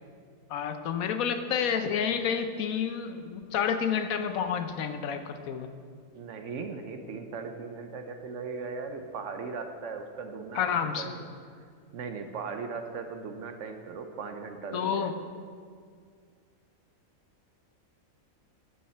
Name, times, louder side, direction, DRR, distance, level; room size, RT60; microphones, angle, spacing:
voice 1, 0.5-5.7 10.5-11.1 14.7-15.1, left 7 dB, 80° left, 8 dB, 1.1 m, -29 dB
voice 2, 6.2-11.2 11.9-15.2, right 4 dB, 65° right, 6 dB, 1.0 m, -38 dB
12.0 x 6.9 x 4.4 m, 2.1 s
omnidirectional pair, 1.5 m